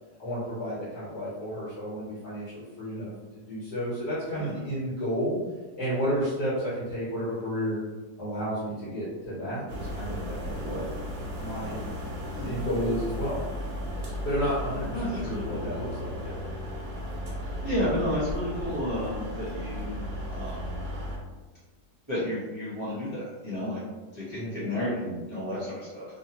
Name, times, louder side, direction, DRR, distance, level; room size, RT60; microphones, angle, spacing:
voice 1, 0.2-5.4 5.8-7.8 8.2-10.9 11.4-11.8 12.4-13.4 14.2-16.3 24.3-24.5, equal, 65° left, -8 dB, 1.4 m, -31 dB
sound 1, 9.7-21.2, equal, 60° right, 0.6 m, -35 dB
voice 2, 12.3-12.6 14.9-15.7 17.4-20.8 22.1-23.8 24.1-26.2, left 1 dB, 25° right, -12 dB, 0.7 m, -32 dB
2.7 x 2.6 x 2.8 m, 1.3 s
omnidirectional pair, 1.9 m